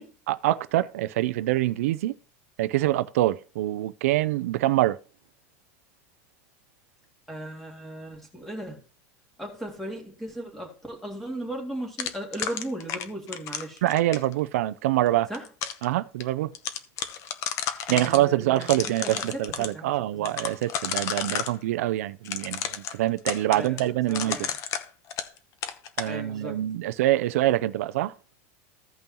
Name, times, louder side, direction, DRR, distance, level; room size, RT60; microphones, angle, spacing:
voice 1, 0.3-2.2 2.6-5.0 13.8-15.3 15.8-16.5 17.9-24.5 26.0-28.1, right 15 dB, 85° right, 0.5 m, -25 dB
voice 2, 7.3-8.8 9.4-13.8 15.3-15.5 17.9-19.9 20.2-20.3 23.5-24.5 26.1-26.6, right 1 dB, 5° left, 2.2 m, -37 dB
sound 1, 12.0-14.3 15.1-15.8 16.2-16.3 16.5-18.2 18.6-19.7 20.3-21.5 22.2-25.4 25.6-26.1, left 8 dB, 40° left, 0.9 m, -32 dB
15.5 x 5.4 x 2.9 m
supercardioid pair, 145°, 8 cm